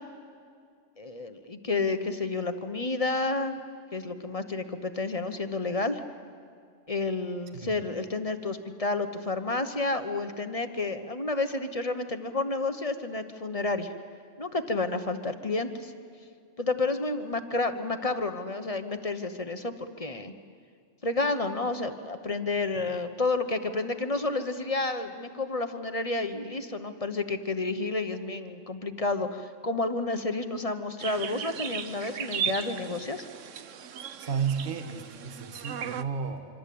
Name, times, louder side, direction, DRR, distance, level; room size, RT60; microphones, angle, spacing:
voice 1, 1.0-3.6 3.9-6.0 6.9-13.9 14.4-15.9 16.6-20.3 21.0-33.2, left 3 dB, 30° left, 8 dB, 1.1 m, -30 dB
sound 1, 31.0-36.0, right 8 dB, 90° right, 1.2 m, -36 dB
voice 2, 34.2-36.5, right 6 dB, 45° right, 6 dB, 1.6 m, -32 dB
25.5 x 25.0 x 8.6 m, 2.2 s
omnidirectional pair, 1.3 m